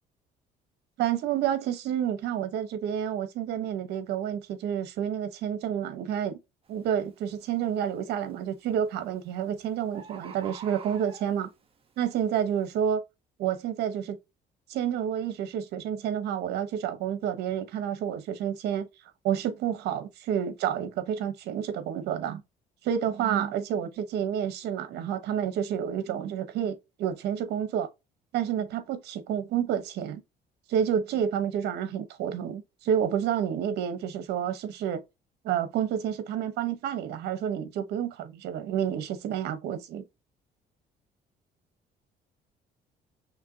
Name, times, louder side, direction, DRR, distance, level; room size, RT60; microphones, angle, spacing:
voice 1, 1.0-6.4 6.7-11.5 12.0-13.0 13.4-14.2 14.7-18.9 19.2-22.4 22.8-27.9 28.3-30.2 30.7-35.0 35.4-40.0, right 9 dB, 75° right, 0.9 m, -29 dB
Bird, 6.7-6.9 7.4-7.9 8.9-9.0 9.3-9.4 9.6-9.7 9.9-11.6 12.2-12.3, right 6 dB, 35° right, 1.0 m, -45 dB
5.9 x 2.7 x 2.7 m
cardioid pair, 110°, 17 cm